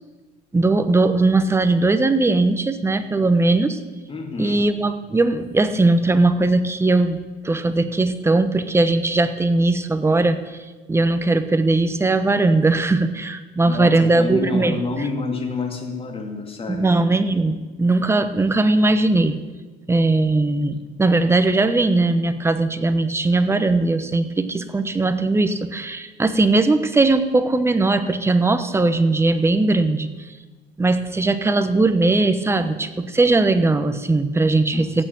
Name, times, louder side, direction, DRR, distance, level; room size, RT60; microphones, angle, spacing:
voice 1, 0.5-3.8 4.4-10.6 10.9-14.8 16.7-19.4 19.9-30.3 30.8-35.0, right 2 dB, 15° right, 9 dB, 1.1 m, -19 dB
voice 2, 4.1-4.6 13.6-16.9 34.7-35.0, left 3 dB, 35° left, 3 dB, 2.6 m, -28 dB
15.5 x 6.9 x 8.9 m, 1.2 s
cardioid pair, 110°, 17 cm